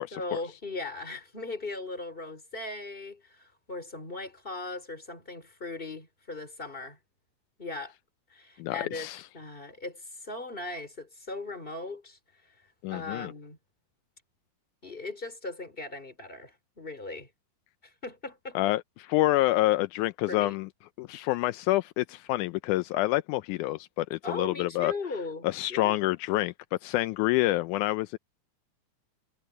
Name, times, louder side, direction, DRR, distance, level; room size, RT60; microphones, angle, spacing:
voice 1, 0.1-7.0 7.6-7.9 8.3-9.1 9.3-12.2 12.9-13.6 14.8-17.3 17.8-18.6 20.3-20.6 24.2-26.0, left 3 dB, 15° left, 4.4 m, -38 dB
voice 2, 8.6-9.2 12.8-13.3 18.6-20.7 21.0-24.9 25.4-26.5 26.8-28.2, left 17 dB, 85° left, 2.0 m, -27 dB
omnidirectional pair, 3.6 m